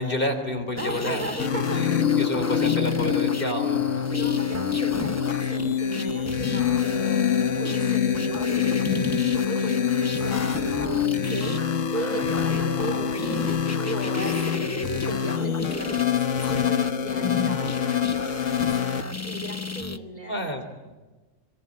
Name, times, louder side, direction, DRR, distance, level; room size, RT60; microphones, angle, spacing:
voice 1, 0.0-4.4 20.3-20.6, left 1 dB, 45° left, 6 dB, 3.4 m, -30 dB
sound 1, 0.7-20.0, left 3 dB, 15° left, 0.7 m, -34 dB
voice 2, 0.8-2.0 4.1-7.2 7.6-11.6 11.9-18.9 19.2-20.4, right 1 dB, 30° right, -1 dB, 3.1 m, -36 dB
sound 2, 1.4-19.0, left 8 dB, 75° left, 1.5 m, -25 dB
25.0 x 23.0 x 8.6 m, 1.2 s
omnidirectional pair, 1.3 m